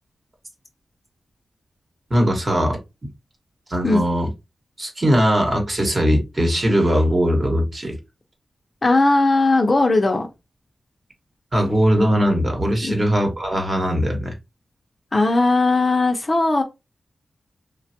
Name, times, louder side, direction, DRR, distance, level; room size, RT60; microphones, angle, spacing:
voice 1, 2.1-2.8 3.7-4.3 4.8-8.0 11.5-14.3, equal, 30° right, 1.0 m, -20 dB
voice 2, 8.8-10.3 12.8-13.0 15.1-16.6, left 2 dB, 35° left, 0.5 m, -18 dB
3.2 x 2.2 x 2.7 m
wide cardioid pair, 135°, 0 cm